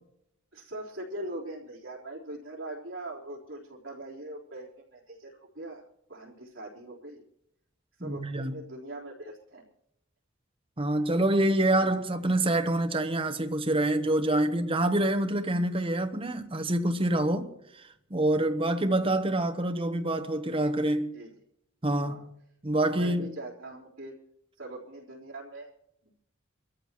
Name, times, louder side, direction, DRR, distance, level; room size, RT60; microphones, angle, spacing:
voice 1, 0.5-7.2 8.0-9.7 21.1-21.3 22.0-22.3 22.9-24.1 24.6-25.7, right 1 dB, 65° right, 4.0 m, -41 dB
voice 2, 8.0-8.5 10.8-17.5 18.1-21.1 21.8-22.3 22.6-23.3, right 1 dB, 25° right, 1.0 m, -26 dB
26.0 x 14.0 x 3.1 m
head